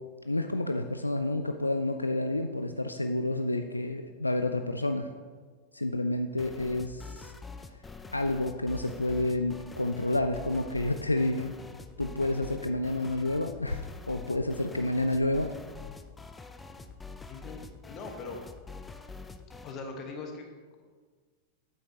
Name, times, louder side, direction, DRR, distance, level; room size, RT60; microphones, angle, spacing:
voice 1, 0.3-5.1 5.7-7.3 8.1-11.5 12.0-15.6, left 1 dB, 85° left, 7 dB, 0.3 m, -29 dB
sound 1, 6.4-19.8, left 4 dB, 10° left, 0.5 m, -46 dB
voice 2, 17.3-18.4 19.6-20.5, left 3 dB, 35° left, 3 dB, 1.3 m, -41 dB
8.4 x 8.2 x 2.9 m, 1.5 s
figure-of-eight pair, 90°, 0 cm